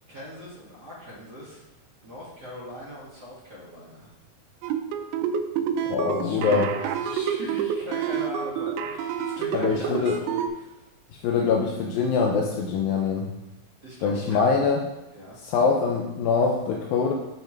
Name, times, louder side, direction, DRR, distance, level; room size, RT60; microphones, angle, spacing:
voice 1, 0.1-4.2 6.0-10.9 13.8-14.4 15.1-15.5, equal, 40° right, -8 dB, 1.6 m, -40 dB
sound 1, 4.6-10.5, right 8 dB, 80° right, 2.2 m, -28 dB
voice 2, 5.9-6.7 9.5-10.2 11.1-13.3 14.0-14.8 15.4-17.1, left 5 dB, 80° left, 0 dB, 2.1 m, -23 dB
6.9 x 5.8 x 4.4 m, 0.99 s
omnidirectional pair, 4.9 m